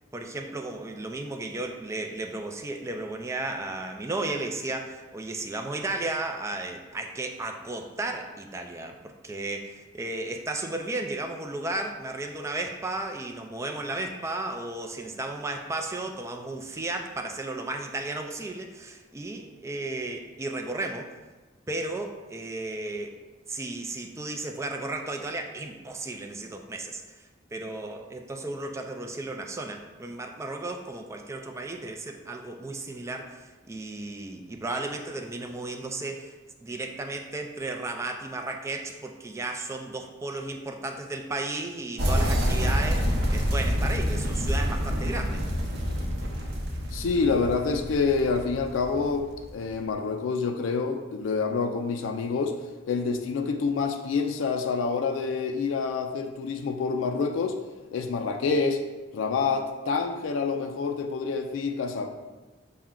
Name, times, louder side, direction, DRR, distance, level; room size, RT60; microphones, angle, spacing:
voice 1, 0.1-21.1 21.7-23.2 23.5-27.0 27.5-36.3 36.6-45.4, right 2 dB, 15° right, 3 dB, 0.3 m, -34 dB
sound 1, 42.0-49.7, equal, 55° right, 0.7 m, -27 dB
voice 2, 46.9-49.3 49.5-52.5 52.9-57.6 57.9-58.8 59.1-62.1, left 4 dB, 80° left, 6 dB, 0.3 m, -27 dB
5.7 x 2.1 x 3.7 m, 1.2 s
head